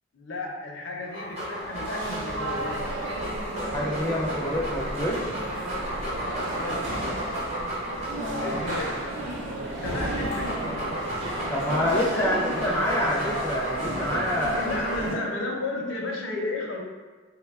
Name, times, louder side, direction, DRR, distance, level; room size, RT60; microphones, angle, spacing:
voice 1, 0.1-2.9 6.5-7.0 8.4-9.1 9.8-10.9 12.1-12.4 14.6-16.8, left 2 dB, 75° left, 0 dB, 0.5 m, -33 dB
Dog, 1.0-9.2 9.8-15.2, equal, 35° right, 0.8 m, -34 dB
sound 1, 1.5-15.1, right 1 dB, 75° right, 0.6 m, -33 dB
voice 2, 3.6-5.3 8.1-8.6 11.5-14.7 15.1-15.3, left 1 dB, 10° left, -4 dB, 0.4 m, -27 dB
2.9 x 2.2 x 3.4 m, 1.3 s
head